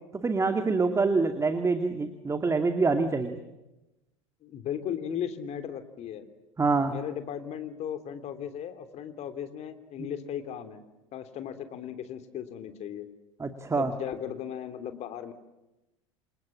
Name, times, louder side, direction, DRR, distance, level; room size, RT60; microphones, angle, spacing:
voice 1, 0.1-3.4 6.6-6.9 10.0-10.1 13.4-13.9, right 4 dB, 15° right, 7 dB, 2.2 m, -26 dB
voice 2, 4.4-6.2 6.9-10.8 11.1-13.1 13.8-15.3, left 9 dB, 40° left, 8 dB, 3.3 m, -36 dB
28.5 x 27.5 x 7.5 m, 0.97 s
figure-of-eight pair, 75°, 17 cm